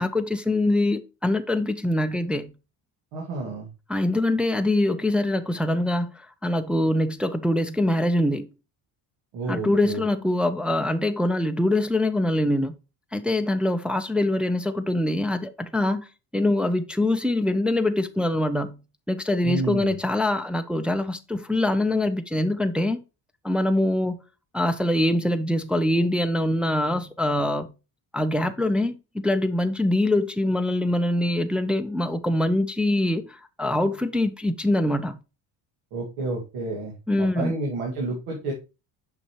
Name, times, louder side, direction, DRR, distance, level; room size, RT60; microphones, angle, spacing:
voice 1, 0.0-2.5 3.9-8.5 9.5-12.7 13.1-16.1 16.3-18.8 19.1-23.0 23.4-24.2 24.5-27.7 28.1-28.9 29.2-35.2 37.1-37.5, left 1 dB, ahead, 0.4 m, -24 dB
voice 2, 3.1-3.7 9.3-10.0 19.4-20.0 35.9-38.5, right 2 dB, 85° right, 2.1 m, -30 dB
6.9 x 5.7 x 3.0 m
cardioid pair, 95°, 48 cm